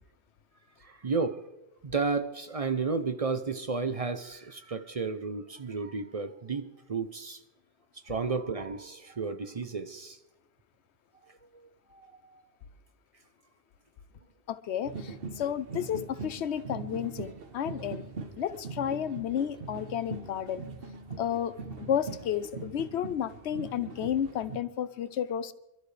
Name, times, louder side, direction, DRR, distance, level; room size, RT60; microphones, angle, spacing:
voice 1, 0.8-1.4 1.8-7.4 7.9-10.2 11.3-12.4, right 4 dB, 40° right, 9 dB, 0.6 m, -33 dB
voice 2, 14.5-18.0 18.4-20.7 21.2-25.5, left 9 dB, 90° left, 14 dB, 1.0 m, -32 dB
sound 1, 14.9-24.6, right 4 dB, 60° right, 1.2 m, -42 dB
27.0 x 12.5 x 3.3 m, 0.94 s
omnidirectional pair, 1.1 m